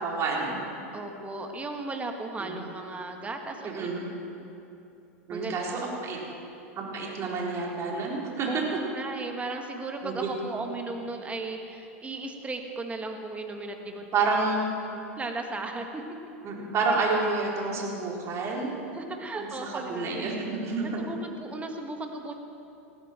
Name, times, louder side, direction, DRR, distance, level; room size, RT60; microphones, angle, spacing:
voice 1, 0.0-0.6 2.4-2.6 3.6-4.1 5.3-6.2 6.8-8.6 10.0-10.3 14.1-14.7 16.4-18.7 19.4-21.0, right 3 dB, 35° right, -2 dB, 4.0 m, -29 dB
voice 2, 0.9-3.9 5.3-5.6 6.3-6.6 8.5-8.6 8.9-14.3 15.2-16.0 18.9-20.3 21.0-22.3, right 3 dB, 15° right, 4 dB, 1.9 m, -36 dB
19.0 x 15.0 x 4.5 m, 2.8 s
hypercardioid pair, 100°, 8 cm